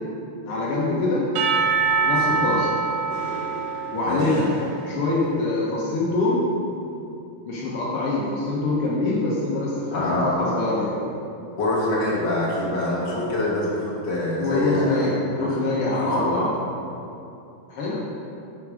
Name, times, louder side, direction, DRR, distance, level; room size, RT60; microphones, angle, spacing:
voice 1, 0.5-1.2 2.0-2.7 3.9-4.5 4.9-6.5 7.5-11.0 14.4-16.5 17.7-18.0, left 2 dB, 85° left, -5 dB, 1.2 m, -24 dB
Percussion / Church bell, 1.4-5.5, right 4 dB, 85° right, 1.4 m, -25 dB
voice 2, 2.3-2.6 4.0-4.4 9.9-10.3 11.5-15.0 15.4-15.6 15.9-16.4, left 1 dB, 45° left, -6 dB, 1.6 m, -25 dB
8.3 x 5.8 x 5.0 m, 2.7 s
omnidirectional pair, 4.2 m